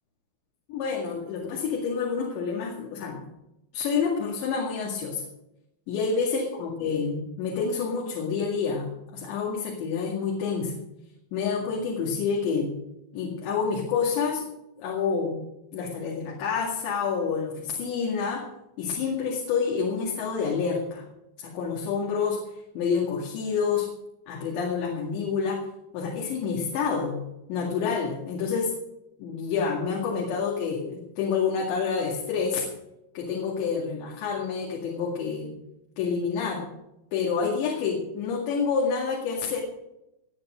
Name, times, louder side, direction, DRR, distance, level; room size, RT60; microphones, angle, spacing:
voice 1, 0.7-3.2 3.7-5.2 5.9-10.8 11.3-12.7 13.1-14.5 14.8-15.4 15.7-18.5 18.8-21.1 21.4-22.4 22.8-23.9 24.3-25.7 25.9-27.2 27.5-28.7 29.2-32.6 33.2-35.5 36.0-36.7 37.1-39.6, left 5 dB, 75° left, -2 dB, 4.3 m, -28 dB
19.0 x 8.8 x 6.3 m, 0.87 s
omnidirectional pair, 5.3 m